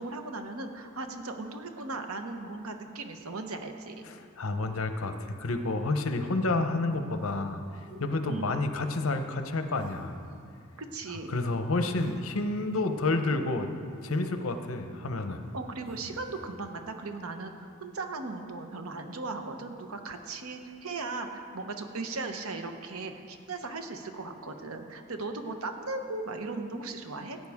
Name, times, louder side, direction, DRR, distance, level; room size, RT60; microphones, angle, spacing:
voice 1, 0.0-4.0 8.3-8.6 10.8-11.4 15.5-27.4, right 3 dB, 80° right, 6 dB, 1.0 m, -37 dB
voice 2, 4.0-7.6 8.0-10.2 11.3-13.7 14.0-15.4, left 2 dB, 70° left, 7 dB, 0.8 m, -29 dB
sound 1, 7.2-7.5 7.8-8.0 9.7-10.4 11.9-12.2 12.7-13.2 14.0-14.8 15.8-16.3, left 1 dB, 45° left, 2.8 m, -53 dB
17.0 x 9.3 x 3.6 m, 2.4 s
head